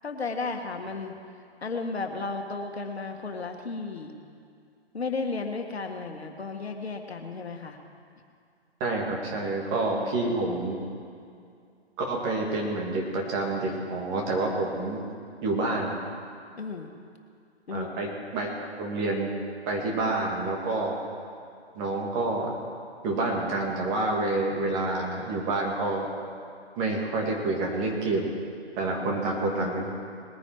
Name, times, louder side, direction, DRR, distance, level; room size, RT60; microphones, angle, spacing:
voice 1, 0.0-1.1 1.6-4.1 4.9-7.8 9.9-10.4 16.6-16.9 17.7-18.1 28.9-29.7, left 4 dB, 70° left, 4 dB, 1.7 m, -34 dB
voice 2, 8.8-10.9 12.0-15.0 15.4-16.0 17.7-18.5 18.8-19.3 19.7-21.0 21.7-22.6 23.0-26.1 26.8-28.3 28.8-29.9, right 2 dB, 25° right, -1 dB, 2.3 m, -28 dB
20.0 x 9.8 x 4.7 m, 2.3 s
figure-of-eight pair, 135°, 33 cm